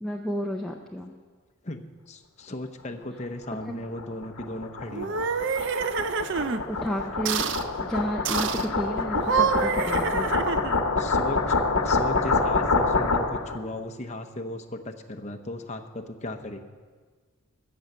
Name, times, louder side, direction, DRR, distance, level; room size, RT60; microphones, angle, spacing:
voice 1, 0.0-1.1 3.6-3.8 6.5-10.3, equal, ahead, 0 dB, 0.6 m, -32 dB
voice 2, 1.6-5.2 11.0-11.4 11.8-16.6, left 1 dB, 30° left, 6 dB, 0.8 m, -36 dB
sound 1, 3.6-13.6, left 3 dB, 70° left, 1.0 m, -26 dB
sound 2, 4.9-6.6 7.2-7.7 8.2-8.7 9.1-10.9, right 6 dB, 55° right, 0.5 m, -27 dB
14.5 x 7.7 x 6.7 m, 1.5 s
head